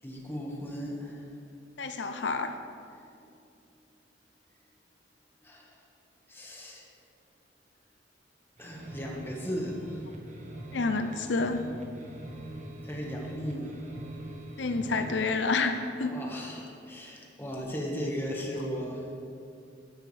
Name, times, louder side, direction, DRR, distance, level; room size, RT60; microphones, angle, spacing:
voice 1, 0.0-1.3 2.9-3.3 5.4-5.8 6.3-6.9 8.6-10.0 12.8-13.8 16.0-19.2, equal, 15° left, -1 dB, 1.5 m, -37 dB
voice 2, 1.8-2.6 10.7-11.6 14.6-16.2, left 3 dB, 90° left, 8 dB, 0.6 m, -29 dB
sound 1, 8.6-15.3, right 1 dB, 40° right, 1.4 m, -43 dB
13.0 x 10.5 x 3.4 m, 2.5 s
head